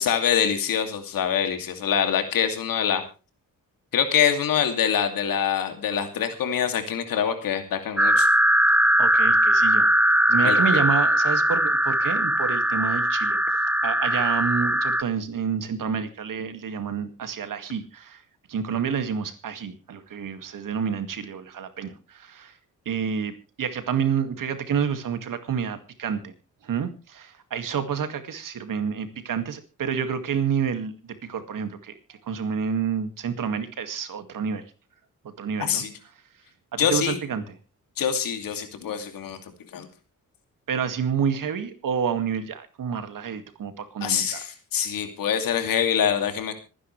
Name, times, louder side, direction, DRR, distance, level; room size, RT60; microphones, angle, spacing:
voice 1, 0.0-3.0 3.9-8.3 10.4-10.8 35.6-35.9 36.8-37.2 38.0-39.4 39.7-39.9 44.0-46.5, left 8 dB, 90° left, 7 dB, 2.6 m, -25 dB
sound 1, 8.0-15.0, right 1 dB, 5° right, 0.8 m, -20 dB
voice 2, 9.0-9.9 10.3-13.4 13.8-18.2 18.5-22.5 22.9-26.3 26.6-34.6 35.4-35.8 36.7-37.4 40.7-44.4, right 7 dB, 75° right, 9 dB, 2.1 m, -29 dB
26.5 x 10.0 x 3.3 m, 0.32 s
cardioid pair, 70°, 33 cm